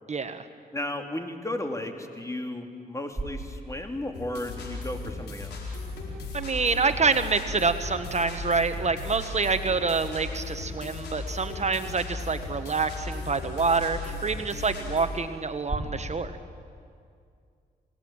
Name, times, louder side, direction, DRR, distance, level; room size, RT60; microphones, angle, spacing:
voice 1, 0.1-0.5 6.3-16.3, right 4 dB, 40° right, 9 dB, 1.2 m, -27 dB
voice 2, 0.7-5.8, left 1 dB, 20° left, 4 dB, 3.0 m, -34 dB
sound 1, 3.1-15.8, right 2 dB, 15° right, 6.3 m, -45 dB
sound 2, 4.1-15.1, left 2 dB, 85° left, 4.7 m, -36 dB
27.5 x 18.0 x 8.9 m, 2.3 s
cardioid pair, 60°, 17 cm